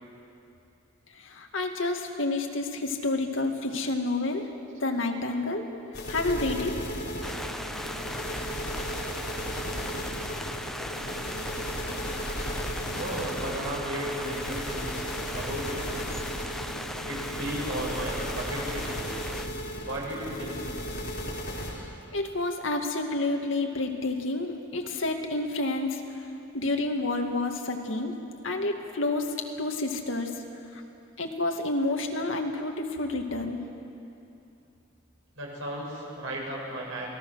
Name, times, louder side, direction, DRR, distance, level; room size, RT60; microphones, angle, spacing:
voice 1, 1.2-4.5 4.8-5.7 6.1-6.8 21.8-26.0 26.5-28.2 28.4-30.3 30.7-30.8 31.2-33.6, left 2 dB, 75° left, 3 dB, 2.1 m, -29 dB
sound 1, 5.9-21.7, equal, 55° left, 4.5 m, -35 dB
sound 2, 7.2-19.5, equal, ahead, 0.7 m, -38 dB
voice 2, 12.9-15.1 15.3-15.9 17.1-18.9 19.9-20.7 35.3-37.1, right 1 dB, 85° right, -3 dB, 7.3 m, -35 dB
28.0 x 19.0 x 6.4 m, 2.7 s
head